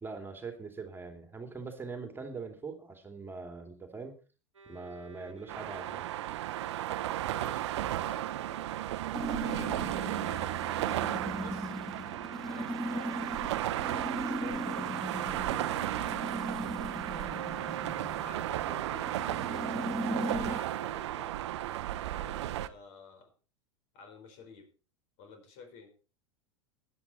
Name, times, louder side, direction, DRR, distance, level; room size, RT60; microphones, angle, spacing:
voice 1, 0.0-4.1 4.7-6.1, right 4 dB, 15° right, 5 dB, 2.9 m, -42 dB
Bowed string instrument, 4.5-18.1, right 5 dB, 90° right, 1.2 m, -51 dB
sound 1, 5.5-22.7, right 13 dB, 65° right, 0.9 m, -34 dB
voice 2, 7.2-8.6 9.4-10.5 11.3-11.8 12.4-16.1 17.1-17.8 18.1-21.3 22.1-23.3 23.9-24.7 25.2-25.9, left 5 dB, 50° left, 7 dB, 4.9 m, -51 dB
sound 2, 9.1-20.6, equal, ahead, 0.5 m, -39 dB
16.0 x 11.0 x 4.4 m, 0.35 s
hypercardioid pair, 90°, 16 cm